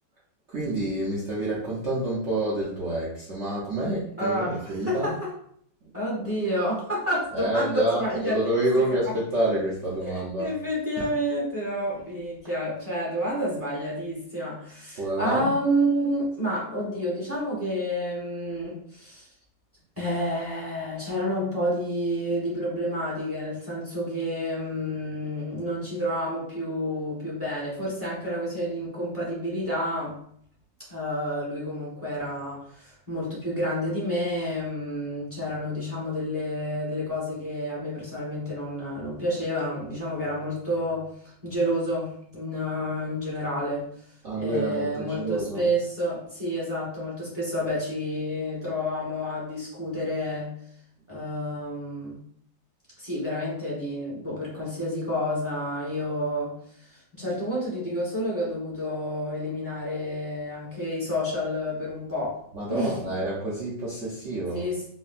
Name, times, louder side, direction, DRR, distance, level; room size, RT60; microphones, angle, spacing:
voice 1, 0.5-5.1 7.3-10.5 15.0-15.5 44.2-45.7 62.5-64.6, right 1 dB, 70° right, -6 dB, 0.7 m, -28 dB
voice 2, 4.2-5.3 5.9-9.2 10.0-19.3 20.0-30.2 30.9-41.1 41.4-43.9 44.3-50.5 51.1-52.2 53.0-56.6 57.1-62.4 62.7-63.0 64.5-64.9, equal, 10° right, -7 dB, 0.8 m, -29 dB
4.0 x 2.1 x 2.5 m, 0.64 s
omnidirectional pair, 2.0 m